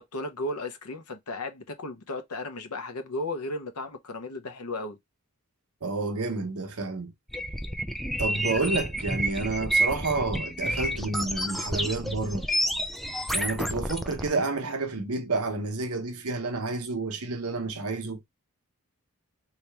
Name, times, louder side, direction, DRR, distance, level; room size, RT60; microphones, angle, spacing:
voice 1, 0.0-5.0, left 2 dB, 80° left, 0.8 m, -35 dB
voice 2, 5.8-7.1 8.2-12.5 13.3-18.2, right 3 dB, 70° right, 0.9 m, -30 dB
sound 1, 7.3-14.3, right 1 dB, ahead, 0.3 m, -29 dB
3.2 x 2.9 x 3.3 m
head